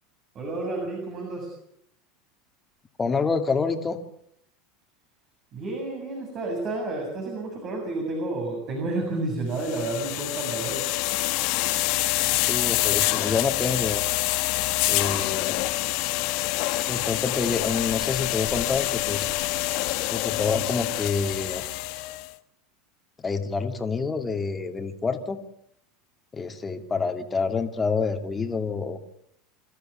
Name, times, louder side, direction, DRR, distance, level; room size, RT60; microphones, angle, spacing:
voice 1, 0.3-1.5 5.5-10.9, right 2 dB, 45° right, 2 dB, 7.5 m, -30 dB
voice 2, 3.0-4.0 12.4-14.0 14.9-15.6 16.9-19.3 20.1-21.6 23.2-25.4 26.3-29.0, left 4 dB, 20° left, 6 dB, 2.6 m, -27 dB
sound 1, 9.6-22.3, left 19 dB, 65° left, 1.3 m, -26 dB
26.0 x 14.0 x 8.3 m, 0.72 s
hypercardioid pair, 90°, 0 cm